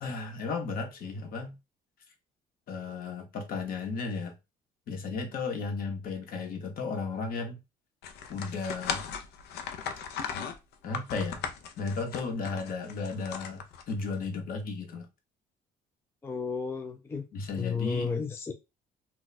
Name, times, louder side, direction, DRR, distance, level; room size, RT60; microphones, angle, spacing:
voice 1, 0.0-1.5 2.7-4.3 4.9-7.6 8.3-9.1 10.8-11.4 11.8-15.1 17.3-18.1, left 4 dB, 60° left, 0.9 m, -34 dB
sound 1, 8.0-14.1, left 7 dB, 75° left, 0.5 m, -37 dB
voice 2, 16.2-17.3 17.6-18.5, left 5 dB, 15° left, 0.3 m, -32 dB
2.2 x 2.2 x 3.9 m
cardioid pair, 110°, 17 cm